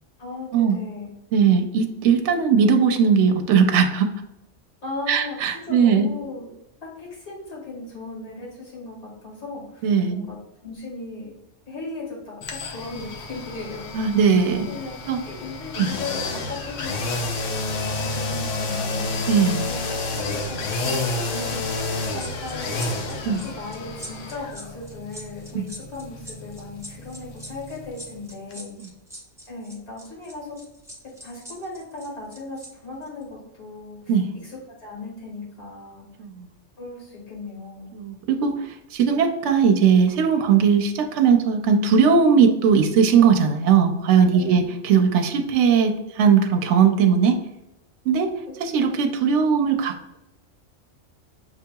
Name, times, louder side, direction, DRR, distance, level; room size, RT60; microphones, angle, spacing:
voice 1, 0.2-1.1 2.0-2.1 4.8-6.5 6.8-9.8 10.1-10.4 10.6-11.3 11.7-14.1 14.6-15.0 15.3-17.2 17.5-19.3 19.9-28.9 29.5-30.6 31.2-36.1 36.8-38.0 44.3-44.7, left 3 dB, 60° left, -4 dB, 2.0 m, -37 dB
voice 2, 1.3-4.1 5.1-6.1 9.8-10.3 13.9-14.7 15.0-15.2 15.8-15.9 19.3-19.6 23.2-23.4 25.5-25.7 34.1-34.3 36.2-36.5 37.9-47.4 48.1-48.3 48.6-50.2, right 6 dB, 75° right, 6 dB, 0.9 m, -19 dB
sound 1, 12.4-28.2 28.5-28.6, left 2 dB, 85° left, 1.0 m, -30 dB
sound 2, 22.2-32.7 33.0-33.2, equal, 5° right, 0.6 m, -42 dB
6.5 x 2.8 x 2.2 m, 0.89 s
omnidirectional pair, 1.3 m